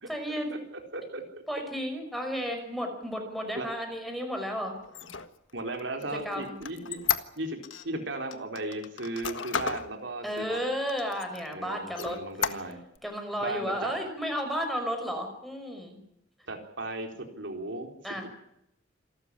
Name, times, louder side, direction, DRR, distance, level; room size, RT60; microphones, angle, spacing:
voice 1, 0.1-0.5 1.5-4.8 6.1-6.5 10.2-12.6 13.0-16.0 18.0-18.3, equal, ahead, 4 dB, 5.5 m, -33 dB
voice 2, 0.7-1.2 3.6-3.7 5.5-7.1 7.4-7.6 7.8-10.6 11.5-12.8 13.4-13.9 16.5-18.0, right 2 dB, 75° right, 4 dB, 4.2 m, -36 dB
Squeak, 4.8-7.9 8.3-9.9 10.4-10.5 10.9-11.5 11.9-13.0, left 8 dB, 85° left, 1.6 m, -33 dB
27.5 x 13.5 x 9.9 m, 0.79 s
head